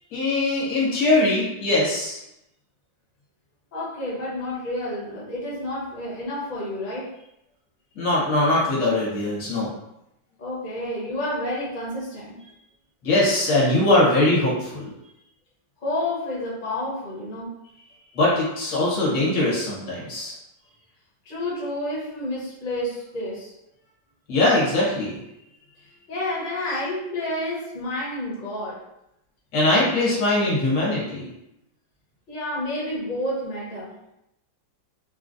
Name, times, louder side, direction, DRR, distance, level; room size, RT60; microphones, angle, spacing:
voice 1, 0.1-2.2 8.0-9.7 13.0-14.9 18.1-20.3 24.3-25.1 29.5-31.3, left 2 dB, 70° left, -6 dB, 1.8 m, -21 dB
voice 2, 3.7-7.1 10.4-12.4 15.8-17.5 21.2-23.5 26.1-28.8 32.3-33.9, left 1 dB, 35° left, -7 dB, 0.9 m, -30 dB
3.9 x 2.2 x 2.5 m, 0.84 s
omnidirectional pair, 2.1 m